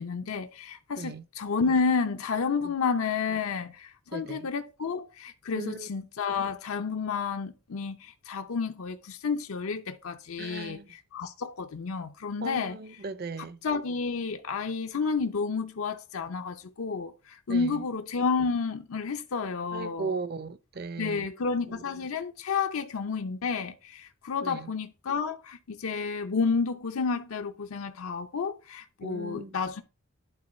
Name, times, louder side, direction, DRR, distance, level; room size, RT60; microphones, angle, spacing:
voice 1, 0.0-12.8 13.4-20.1 21.0-29.8, left 5 dB, 90° left, 0.6 m, -31 dB
voice 2, 4.1-4.5 5.5-5.9 10.4-10.9 12.4-13.6 17.5-17.8 19.7-21.3 21.7-22.1 24.4-24.7 29.0-29.5, right 4 dB, 45° right, 0.5 m, -37 dB
11.0 x 3.8 x 4.2 m
head